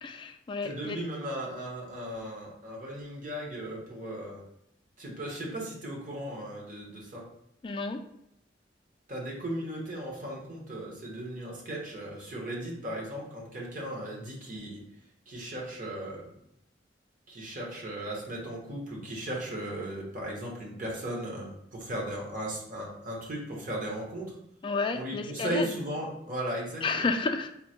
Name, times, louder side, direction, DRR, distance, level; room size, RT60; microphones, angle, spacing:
voice 1, 0.0-1.0 7.6-8.0 24.6-25.7 26.8-27.5, left 3 dB, 30° left, 5 dB, 0.3 m, -31 dB
voice 2, 0.6-4.4 5.0-7.3 9.1-14.8 15.3-16.3 17.3-24.4 24.9-27.1, right 1 dB, 50° right, -2 dB, 1.1 m, -36 dB
3.8 x 2.1 x 4.3 m, 0.77 s
head